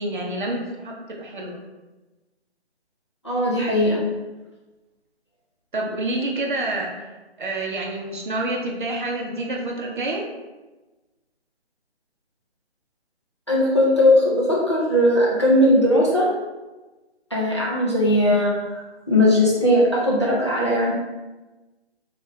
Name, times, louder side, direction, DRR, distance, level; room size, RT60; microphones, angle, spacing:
voice 1, 0.0-1.6 5.7-6.9 7.4-10.2, right 2 dB, 50° right, 0 dB, 0.6 m, -28 dB
voice 2, 3.2-4.0 13.5-16.3 17.3-18.5 19.1-20.9, left 1 dB, 30° left, -5 dB, 0.4 m, -18 dB
3.4 x 2.4 x 3.1 m, 1.1 s
figure-of-eight pair, 155°, 33 cm